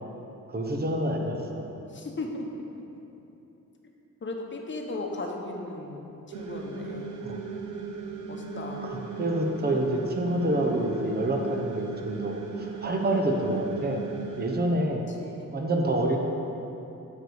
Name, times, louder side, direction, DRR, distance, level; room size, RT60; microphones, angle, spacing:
voice 1, 0.5-1.7 7.2-7.4 9.2-14.0 14.4-15.0 15.5-16.2, right 1 dB, 30° right, 1 dB, 1.1 m, -27 dB
voice 2, 1.9-2.8 4.2-7.1 8.2-8.9 15.2-15.5, left 2 dB, 35° left, 1 dB, 1.2 m, -36 dB
sound 1, 6.3-14.6, right 4 dB, 75° right, 0.9 m, -37 dB
8.6 x 4.8 x 7.1 m, 2.9 s
cardioid pair, 115°, 32 cm